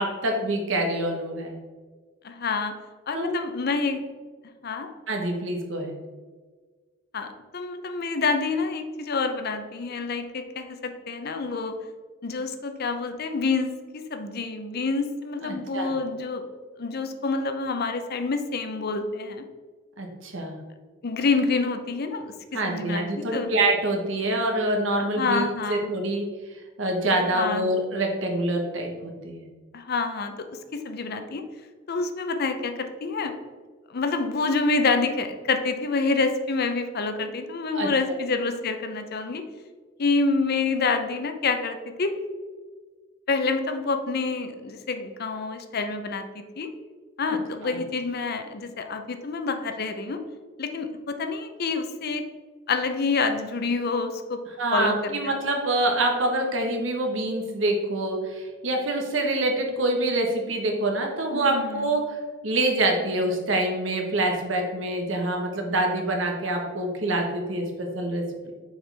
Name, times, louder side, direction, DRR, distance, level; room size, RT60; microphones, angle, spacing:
voice 1, 0.0-1.6 3.1-3.4 5.1-6.0 15.4-15.9 20.0-20.6 22.5-26.2 26.8-29.4 37.7-37.9 47.3-47.4 47.6-47.8 54.6-68.5, right 1 dB, 75° right, 2 dB, 1.1 m, -26 dB
voice 2, 2.2-2.7 3.1-4.0 4.6-4.9 7.1-7.3 7.5-11.7 12.2-13.7 14.1-16.5 16.8-19.4 21.0-22.3 22.6-23.5 25.2-25.9 27.2-27.7 29.7-31.4 31.9-33.3 33.9-39.4 40.0-42.1 43.3-46.7 47.2-50.2 50.6-52.2 52.7-54.4 54.7-55.3 61.3-61.9, left 4 dB, 55° left, 7 dB, 0.6 m, -27 dB
6.5 x 4.7 x 3.4 m, 1.4 s
head